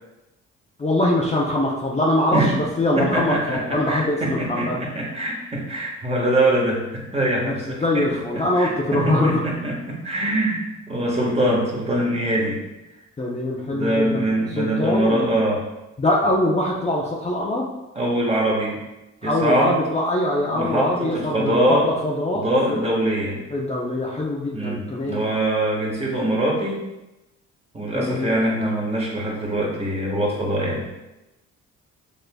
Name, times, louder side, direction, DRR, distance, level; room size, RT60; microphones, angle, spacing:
voice 1, 0.8-4.8 7.4-7.5 7.8-9.4 13.2-15.2 16.0-17.7 19.2-22.4 22.7-22.8 23.5-25.2 27.9-28.3, left 1 dB, 20° left, -3 dB, 0.6 m, -23 dB
voice 2, 2.9-8.1 8.3-10.6 10.9-12.6 13.7-15.6 17.9-18.8 19.2-19.7 20.5-21.9 22.3-23.4 24.5-26.8 27.7-30.9, right 1 dB, 20° right, -2 dB, 1.3 m, -23 dB
6.6 x 3.1 x 2.2 m, 0.98 s
cardioid pair, 90°, 30 cm